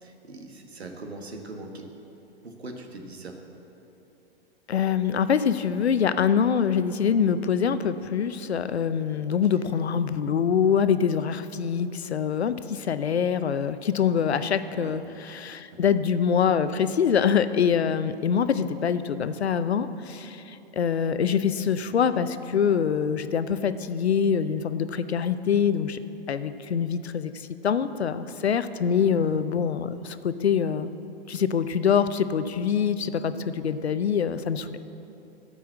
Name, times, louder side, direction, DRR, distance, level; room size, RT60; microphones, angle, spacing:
voice 1, 0.0-1.9 2.4-3.4 9.2-9.9 14.7-15.0 15.7-15.9 28.9-29.2, right 2 dB, 85° right, 3 dB, 1.6 m, -42 dB
voice 2, 4.7-26.0 26.3-30.9 31.3-34.8, left 7 dB, 85° left, 12 dB, 0.6 m, -24 dB
13.0 x 5.6 x 7.4 m, 2.9 s
hypercardioid pair, 115°, 31 cm